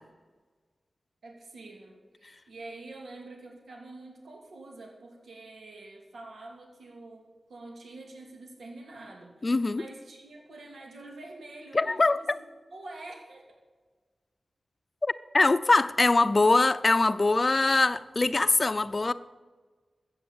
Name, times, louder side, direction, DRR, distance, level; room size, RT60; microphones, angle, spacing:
voice 1, 1.2-13.6, right 2 dB, 85° right, 2.6 m, -46 dB
voice 2, 9.4-9.8 11.7-12.4 15.0-19.1, left 3 dB, 40° left, 0.6 m, -23 dB
13.5 x 8.0 x 8.0 m
wide cardioid pair, 70°, 0 cm